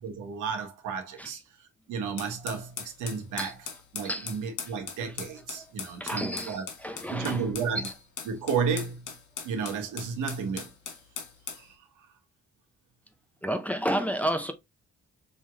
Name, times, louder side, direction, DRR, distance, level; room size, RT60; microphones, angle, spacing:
voice 1, 0.0-3.6 3.9-6.6 7.1-7.9 8.3-9.2 9.4-10.7 11.5-11.8, right 5 dB, 85° right, 1.2 m, -32 dB
sound 1, 2.2-11.7, left 7 dB, 75° left, 1.4 m, -40 dB
voice 2, 4.0-4.4 5.0-5.2 5.6-7.5 7.7-7.9 13.4-14.5, equal, 5° left, 0.7 m, -31 dB
5.5 x 3.0 x 2.3 m
cardioid pair, 90°, 30 cm